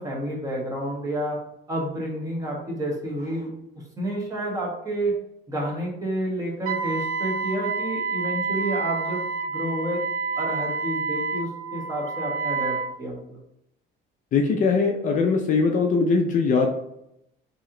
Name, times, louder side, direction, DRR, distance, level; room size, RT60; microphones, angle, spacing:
voice 1, 0.0-1.4 1.7-3.5 4.0-5.2 5.5-10.0 10.4-13.4, right 1 dB, 15° right, -2 dB, 1.0 m, -30 dB
Wind instrument woodwind instrument, 6.7-12.9, right 4 dB, 75° right, 0.8 m, -28 dB
voice 2, 14.3-16.7, left 4 dB, 40° left, 2 dB, 0.4 m, -21 dB
3.1 x 2.8 x 3.7 m, 0.80 s
cardioid pair, 160°, 20 cm